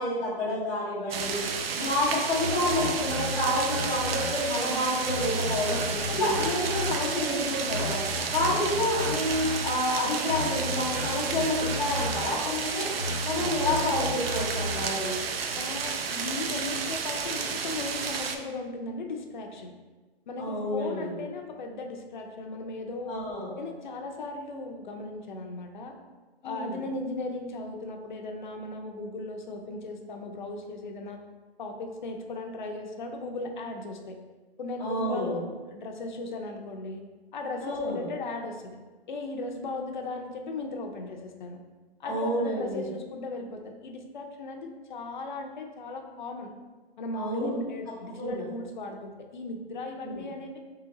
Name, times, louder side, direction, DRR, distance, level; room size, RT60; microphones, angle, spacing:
voice 1, 0.0-1.4 1.8-5.8 6.1-8.0 8.3-12.9 13.2-15.1 20.4-21.1 23.1-23.5 26.4-26.8 34.8-35.3 37.6-38.0 42.0-42.8 47.1-47.6 48.2-48.4 50.0-50.2, left 1 dB, ahead, -15 dB, 0.4 m, -29 dB
sound 1, 1.1-18.3, right 5 dB, 70° right, 0.6 m, -32 dB
sound 2, 1.9-15.0, left 1 dB, 25° right, 1.0 m, -35 dB
voice 2, 5.6-6.4 15.6-19.7 20.3-23.2 23.6-26.0 26.4-31.2 31.6-34.2 34.6-37.0 37.3-38.8 39.1-41.6 42.0-46.5 47.0-50.6, left 2 dB, 50° left, 3 dB, 0.5 m, -37 dB
3.8 x 3.1 x 4.0 m, 1.3 s
hypercardioid pair, 160°, 31 cm